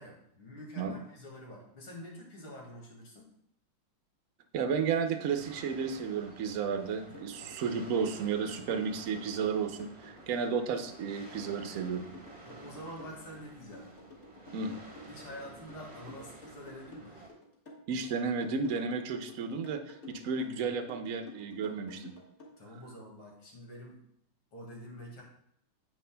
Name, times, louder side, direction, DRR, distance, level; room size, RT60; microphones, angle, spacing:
voice 1, 0.0-3.3 12.4-13.9 15.1-17.2 22.6-24.0 24.5-25.2, equal, 80° left, -1 dB, 3.0 m, -47 dB
voice 2, 4.5-12.1 14.5-14.7 17.9-22.1, right 6 dB, 60° right, 7 dB, 0.8 m, -33 dB
sound 1, 5.4-17.3, right 3 dB, 25° right, 1.2 m, -51 dB
sound 2, 7.1-22.5, left 2 dB, 35° left, 1.8 m, -51 dB
9.4 x 8.5 x 2.2 m, 0.71 s
omnidirectional pair, 2.3 m